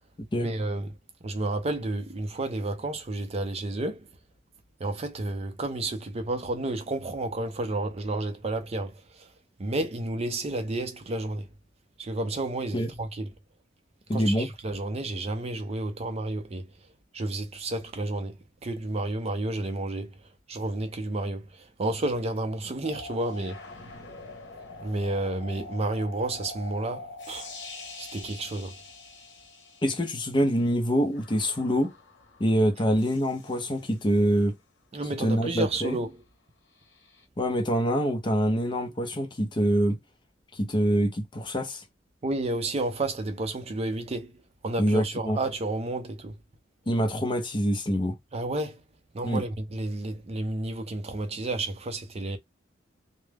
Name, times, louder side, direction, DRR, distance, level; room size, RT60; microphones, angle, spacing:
voice 1, 0.4-0.9 1.2-4.1 4.8-9.3 9.6-11.5 12.0-13.3 14.1-16.7 17.1-18.4 18.6-20.1 20.5-23.6 24.8-27.5 28.0-28.7 34.9-36.1 42.2-46.4 48.3-48.8 49.1-52.4, right 2 dB, 35° right, 0.5 m, -31 dB
voice 2, 14.1-14.5 29.8-31.9 32.4-34.5 35.2-36.0 37.4-40.0 40.5-41.8 44.8-45.4 46.9-48.1 49.2-49.4, equal, 25° left, 0.5 m, -25 dB
sound 1, 22.8-30.4 31.1-34.1 36.8-37.2, left 3 dB, 70° left, 0.9 m, -44 dB
2.2 x 2.0 x 3.2 m
head